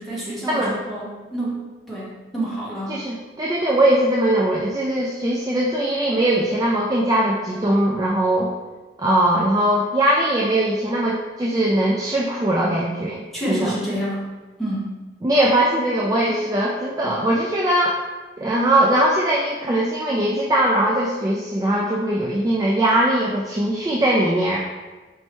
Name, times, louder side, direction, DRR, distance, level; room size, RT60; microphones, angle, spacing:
voice 1, 0.0-3.0 13.3-14.9, right 1 dB, ahead, -8 dB, 1.0 m, -29 dB
voice 2, 2.9-8.5 9.0-13.7 15.2-18.0 18.4-24.6, right 1 dB, 20° right, -4 dB, 0.3 m, -20 dB
4.4 x 3.2 x 2.9 m, 1.3 s
head